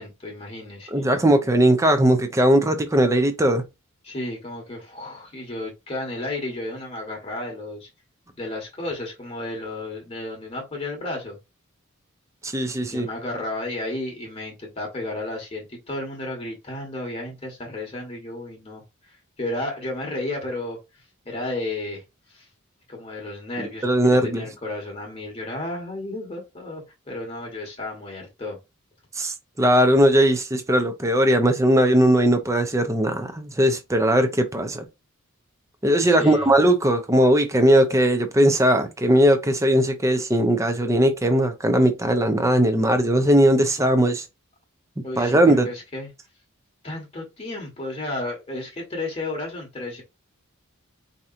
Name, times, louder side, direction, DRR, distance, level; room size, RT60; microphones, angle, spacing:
voice 1, 0.0-1.0 4.0-7.9 8.4-11.4 12.9-22.0 22.3-22.5 22.9-28.6 36.1-36.5 45.0-46.1 46.8-50.0, left 2 dB, 30° left, 1.1 m, -33 dB
voice 2, 0.9-3.6 12.4-13.1 23.6-24.5 29.1-34.8 35.8-44.2 45.0-45.7, right 1 dB, 15° right, 0.5 m, -19 dB
4.6 x 2.8 x 2.5 m
head